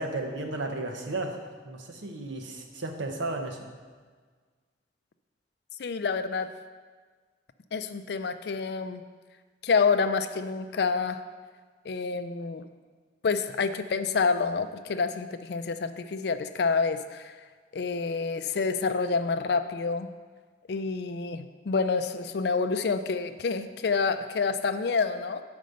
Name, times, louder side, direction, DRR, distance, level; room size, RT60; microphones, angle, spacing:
voice 1, 0.0-1.4 1.6-3.7, right 2 dB, 85° right, 3 dB, 0.9 m, -34 dB
voice 2, 5.8-6.5 7.7-9.0 9.6-11.2 11.9-12.6 13.2-17.4 17.7-20.1 20.7-25.4, left 4 dB, 60° left, 10 dB, 0.4 m, -28 dB
7.6 x 5.2 x 5.3 m, 1.5 s
head